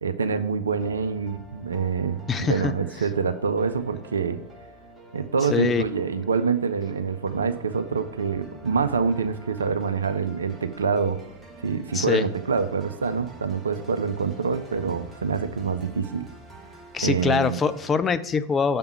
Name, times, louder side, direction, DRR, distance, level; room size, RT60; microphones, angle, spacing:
voice 1, 0.0-4.4 5.1-11.2 11.6-16.3 17.0-17.6, right 5 dB, 70° right, 10 dB, 0.4 m, -26 dB
sound 1, 0.8-17.8, right 1 dB, 15° right, 1.1 m, -47 dB
voice 2, 2.3-2.7 5.5-5.9 11.9-12.3 16.9-18.8, left 5 dB, 20° left, 12 dB, 0.4 m, -23 dB
6.6 x 3.5 x 5.6 m, 0.81 s
figure-of-eight pair, 90°, 0 cm